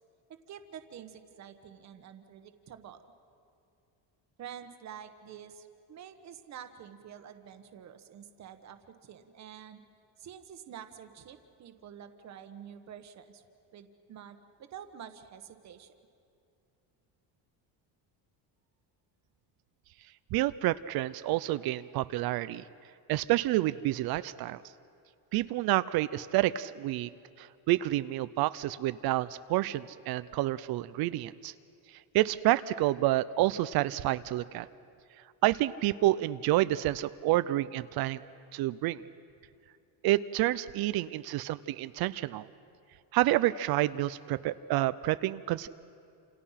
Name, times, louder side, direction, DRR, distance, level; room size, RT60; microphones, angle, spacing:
voice 1, 0.5-3.0 4.4-9.8 10.2-13.4 13.7-15.9, right 9 dB, 40° right, 8 dB, 1.4 m, -48 dB
voice 2, 20.3-22.6 23.1-24.6 25.3-27.1 27.4-31.5 31.9-34.7 35.4-38.2 38.5-39.0 40.0-42.5 43.1-45.7, right 16 dB, 60° right, 15 dB, 0.6 m, -29 dB
28.5 x 28.0 x 5.8 m, 2.6 s
cardioid pair, 175°, 42 cm